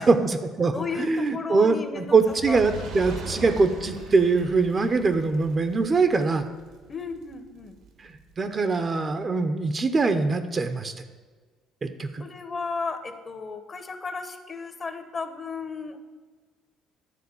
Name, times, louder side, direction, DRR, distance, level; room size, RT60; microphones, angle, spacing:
voice 1, 0.0-6.4 8.0-10.9 11.8-12.2, right 4 dB, 35° right, 9 dB, 0.7 m, -23 dB
voice 2, 0.7-2.1 2.5-2.6 3.0-3.2 6.9-7.8 12.2-16.0, left 4 dB, 35° left, 8 dB, 1.0 m, -34 dB
Fire, 2.1-8.5 9.2-9.3, right 3 dB, 75° right, 1.5 m, -41 dB
11.0 x 3.7 x 7.0 m, 1.4 s
supercardioid pair, 85°, 0 cm